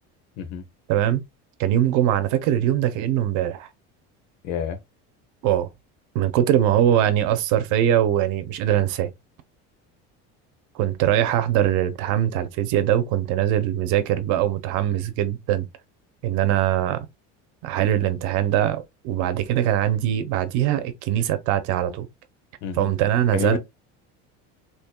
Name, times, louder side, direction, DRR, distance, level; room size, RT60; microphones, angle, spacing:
voice 1, 0.9-1.2 1.6-3.7 5.4-5.7 6.1-9.1 10.8-15.6 16.2-17.1 17.6-22.1 22.7-23.6, right 11 dB, 70° right, 0.9 m, -22 dB
voice 2, 4.4-4.8 22.6-22.9 23.3-23.6, left 7 dB, 65° left, 1.0 m, -28 dB
4.4 x 3.0 x 2.3 m
cardioid pair, 150°, 31 cm